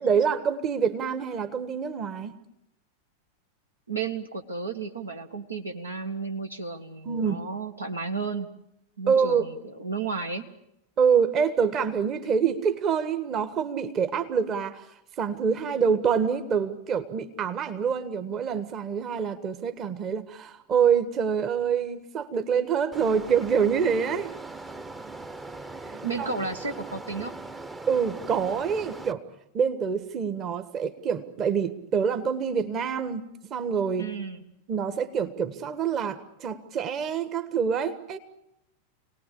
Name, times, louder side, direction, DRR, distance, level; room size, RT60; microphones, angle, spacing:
voice 1, 0.0-2.4 7.0-7.4 9.1-9.4 11.0-14.9 15.2-24.3 26.2-26.3 27.9-29.2 29.5-34.1 34.7-38.2, right 6 dB, 30° right, 10 dB, 1.5 m, -26 dB
voice 2, 3.9-8.5 9.0-10.5 26.0-27.4 34.0-34.4, right 4 dB, 75° right, 5 dB, 1.8 m, -33 dB
sound 1, 22.9-29.1, right 2 dB, 10° right, 0.9 m, -40 dB
27.5 x 19.0 x 8.6 m, 0.83 s
figure-of-eight pair, 90°, 0 cm